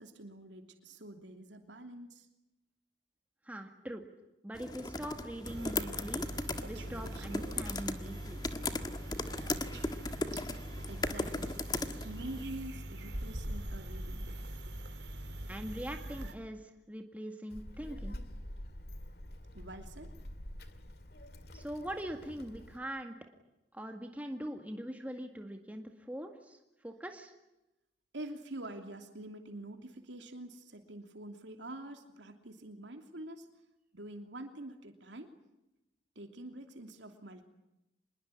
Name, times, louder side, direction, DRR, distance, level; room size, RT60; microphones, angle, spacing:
voice 1, 0.0-2.3 10.9-11.5 12.0-14.3 14.7-14.8 19.5-20.1 28.1-33.5 33.9-35.3 36.1-37.4, right 1 dB, 85° right, 5 dB, 3.0 m, -46 dB
voice 2, 3.5-4.0 4.4-6.3 6.7-8.4 15.5-18.2 21.5-23.2 23.7-26.6 26.8-27.3, right 1 dB, 10° right, 4 dB, 2.0 m, -42 dB
sound 1, 4.5-12.4, left 2 dB, 20° left, 1.6 m, -38 dB
sound 2, 5.4-16.3, right 1 dB, 70° right, 3.1 m, -42 dB
Child speech kid speaking, 17.5-22.8, equal, 60° left, 2.3 m, -46 dB
26.5 x 22.0 x 9.8 m, 0.93 s
head